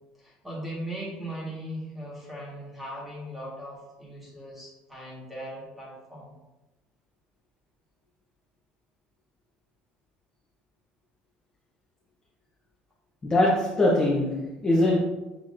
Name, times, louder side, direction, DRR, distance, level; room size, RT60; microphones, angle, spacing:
voice 1, 0.2-6.3, right 1 dB, 5° right, -5 dB, 1.4 m, -38 dB
voice 2, 13.2-15.0, left 1 dB, 20° left, -5 dB, 0.7 m, -22 dB
7.1 x 3.0 x 2.5 m, 1.0 s
cardioid pair, 160°, 4 cm